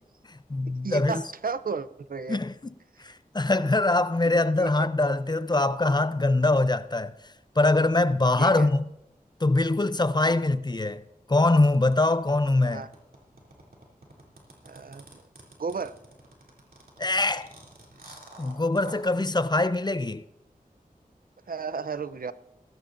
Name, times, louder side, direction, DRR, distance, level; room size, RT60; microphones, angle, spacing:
voice 1, 0.3-1.2 2.3-2.5 3.0-7.1 7.6-8.9 9.4-11.0 11.3-12.8 17.0-17.5 18.4-20.2, left 2 dB, 30° left, 0.5 m, -23 dB
voice 2, 0.8-2.4 2.9-3.0 4.3-4.9 8.4-8.7 10.3-10.6 12.6-12.9 14.6-15.1 15.6-15.9 21.5-22.3, right 5 dB, 75° right, 0.6 m, -34 dB
sound 1, 11.7-19.1, right 2 dB, 90° right, 3.0 m, -49 dB
19.0 x 15.5 x 2.6 m
wide cardioid pair, 50°, 15 cm